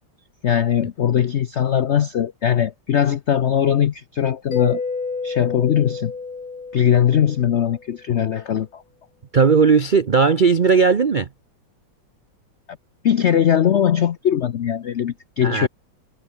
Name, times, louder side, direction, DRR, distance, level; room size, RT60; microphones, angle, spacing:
voice 1, 0.4-4.8 5.2-6.1 6.7-8.8 13.0-15.7, left 9 dB, 90° left, 0.6 m, -20 dB
Mallet percussion, 4.5-8.0, left 4 dB, 45° left, 3.2 m, -30 dB
voice 2, 9.3-11.3 15.4-15.7, right 5 dB, 85° right, 0.4 m, -16 dB
omnidirectional pair, 2.1 m